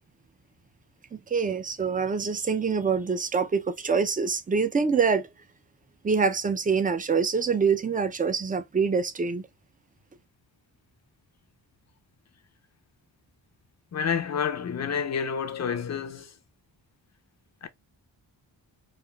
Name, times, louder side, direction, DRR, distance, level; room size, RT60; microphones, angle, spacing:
voice 1, 1.3-5.3 6.0-9.5, right 5 dB, 20° right, 0.4 m, -25 dB
voice 2, 13.9-16.4 17.6-17.7, left 7 dB, 40° left, 0.5 m, -29 dB
3.2 x 2.4 x 2.3 m
wide cardioid pair, 105°, 44 cm